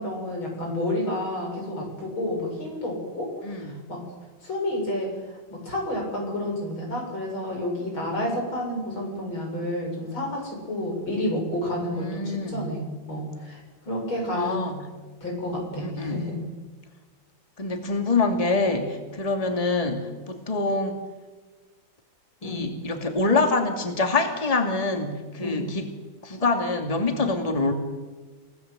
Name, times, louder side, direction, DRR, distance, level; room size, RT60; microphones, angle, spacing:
voice 1, 0.0-4.0 4.4-5.1 5.5-12.8 13.1-13.6 13.9-14.6 15.2-16.4 22.4-22.6 25.4-25.6, left 1 dB, 85° left, 0 dB, 8.0 m, -30 dB
voice 2, 3.4-3.8 12.0-12.7 14.3-14.9 15.8-16.2 17.6-21.0 22.4-25.9 26.2-27.7, left 3 dB, 20° left, 4 dB, 2.5 m, -25 dB
29.0 x 17.5 x 8.2 m, 1.3 s
omnidirectional pair, 2.2 m